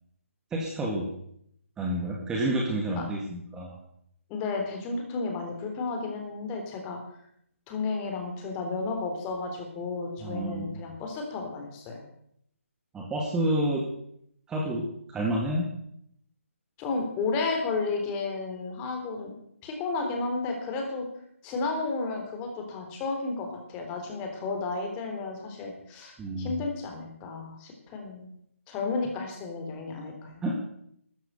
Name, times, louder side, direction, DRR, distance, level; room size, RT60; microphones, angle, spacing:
voice 1, 0.5-1.1 1.8-3.8 10.2-10.8 12.9-13.9 14.5-15.7 26.2-26.5 30.4-30.5, right 1 dB, 10° right, -2 dB, 2.1 m, -29 dB
voice 2, 4.3-7.0 7.7-12.0 16.8-19.4 19.6-21.0 21.4-28.3 28.7-30.4, left 3 dB, 20° left, 3 dB, 3.7 m, -32 dB
14.0 x 13.5 x 6.8 m, 0.71 s
figure-of-eight pair, 150°, 8 cm